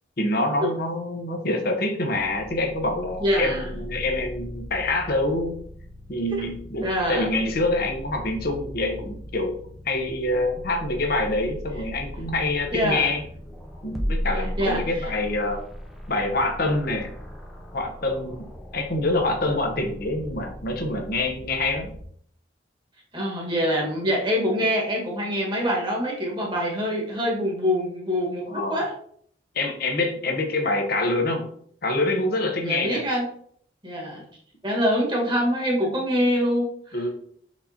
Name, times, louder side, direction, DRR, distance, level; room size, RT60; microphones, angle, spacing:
voice 1, 0.2-5.6 6.1-9.6 9.8-13.2 13.8-15.6 16.1-17.1 17.7-18.4 18.7-21.9 28.5-28.8 29.5-31.5 31.8-33.0 36.9-37.1, left 2 dB, 55° left, 3 dB, 0.9 m, -26 dB
sound 1, 2.1-22.1, equal, ahead, 0.6 m, -37 dB
voice 2, 3.2-3.6 6.8-7.3 12.7-13.1 14.6-15.1 23.1-28.9 32.6-33.2 33.8-34.2 34.6-37.0, equal, 25° right, -2 dB, 1.5 m, -25 dB
4.5 x 4.1 x 2.8 m, 0.63 s
head